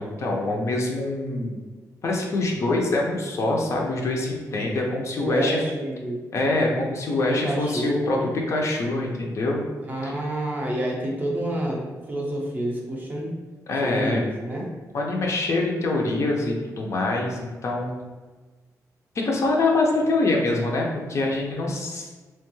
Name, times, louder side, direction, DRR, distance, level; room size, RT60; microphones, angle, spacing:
voice 1, 0.0-1.6 2.0-5.6 6.3-8.2 8.5-9.6 10.0-10.1 13.7-14.2 14.9-18.0 19.2-22.1, left 2 dB, 50° left, 0 dB, 0.4 m, -24 dB
voice 2, 5.2-6.2 7.1-8.3 9.9-13.3 13.8-14.7, right 1 dB, 25° right, -2 dB, 0.5 m, -28 dB
2.9 x 2.2 x 3.0 m, 1.3 s
wide cardioid pair, 155°, 6 cm